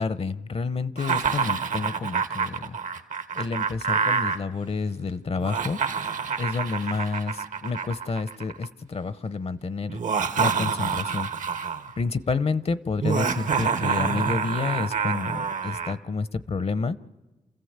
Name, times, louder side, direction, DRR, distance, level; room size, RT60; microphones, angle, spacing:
voice 1, 0.0-2.8 3.4-5.8 6.4-10.0 10.4-11.3 12.0-17.0, left 4 dB, 50° left, 16 dB, 0.7 m, -29 dB
Laughter, 1.0-4.4 5.3-8.7 9.9-11.9 13.0-16.0, right 6 dB, 75° right, 1.2 m, -27 dB
28.0 x 14.5 x 8.0 m, 1.2 s
cardioid pair, 70°, 13 cm